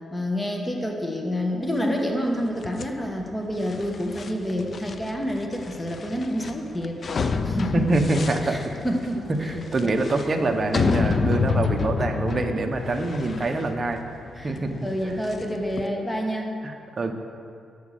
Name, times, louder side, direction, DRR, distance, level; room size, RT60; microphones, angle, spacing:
voice 1, 0.1-7.0 7.4-7.9 8.4-9.6 9.8-9.9 14.3-16.5, equal, 15° left, 2 dB, 1.1 m, -28 dB
sound 1, 2.6-15.9, left 5 dB, 40° left, 0.5 m, -29 dB
voice 2, 7.7-8.6 9.4-14.0 14.4-14.7 16.6-17.1, right 2 dB, 30° right, 4 dB, 0.9 m, -25 dB
10.5 x 6.3 x 7.5 m, 2.4 s
cardioid pair, 130°, 0 cm